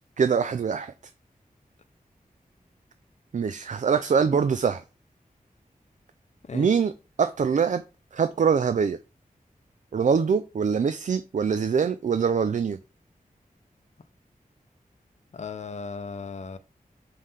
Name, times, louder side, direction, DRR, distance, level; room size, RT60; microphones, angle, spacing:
voice 1, 0.2-0.9 3.3-4.8 6.5-6.9 7.2-7.8 8.1-9.0 9.9-12.8, right 6 dB, 55° right, 0.4 m, -23 dB
voice 2, 6.5-6.8 15.3-16.6, left 5 dB, 50° left, 0.6 m, -36 dB
5.4 x 3.3 x 5.6 m
wide cardioid pair, 90°, 15 cm